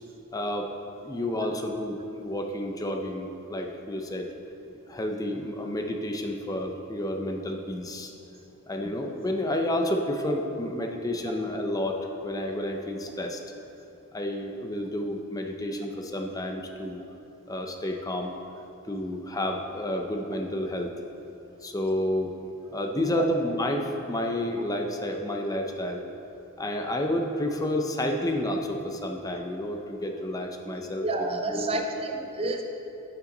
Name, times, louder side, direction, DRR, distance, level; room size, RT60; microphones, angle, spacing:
voice 1, 0.3-0.7 1.0-4.3 4.9-8.1 8.7-13.4 14.1-17.0 17.5-18.3 18.8-20.9 21.6-22.3 22.7-26.0 26.6-31.0 31.5-31.8, left 1 dB, 15° left, 3 dB, 0.6 m, -30 dB
voice 2, 31.0-32.6, right 2 dB, 25° right, 4 dB, 0.5 m, -29 dB
13.5 x 5.7 x 3.9 m, 2.8 s
head